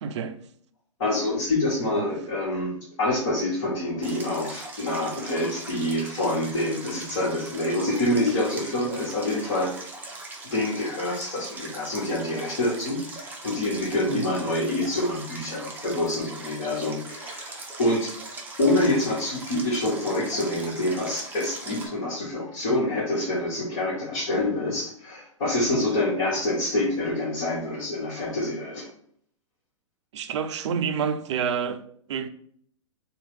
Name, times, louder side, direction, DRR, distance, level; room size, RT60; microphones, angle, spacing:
voice 1, 0.0-0.4 2.0-2.1 14.1-14.3 30.1-32.3, right 7 dB, 60° right, 0.4 m, -28 dB
voice 2, 1.0-10.0 10.4-18.1 18.6-28.9, left 1 dB, 50° left, 1.5 m, -26 dB
Stream, 4.0-21.9, right 2 dB, 10° right, 0.6 m, -40 dB
3.0 x 2.4 x 3.3 m
figure-of-eight pair, 110°, 17 cm